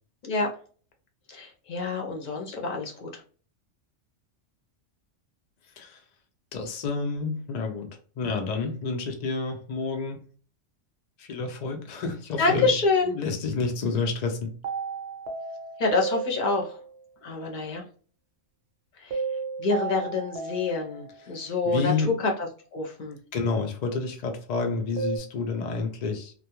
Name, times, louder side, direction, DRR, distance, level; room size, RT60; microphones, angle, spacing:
voice 1, 1.3-3.2 12.4-13.1 15.8-16.8 17.2-17.8 19.0-19.2 19.6-21.9 22.2-23.2, left 3 dB, 50° left, 1 dB, 0.6 m, -27 dB
voice 2, 6.5-7.9 8.2-10.2 11.2-12.7 13.1-14.5 21.2-22.1 23.3-26.3, left 4 dB, 90° left, 4 dB, 0.3 m, -29 dB
sound 1, 14.6-16.9 19.1-21.4 25.0-25.2, right 5 dB, 65° right, 0.8 m, -33 dB
2.2 x 2.2 x 2.8 m, 0.42 s
omnidirectional pair, 1.3 m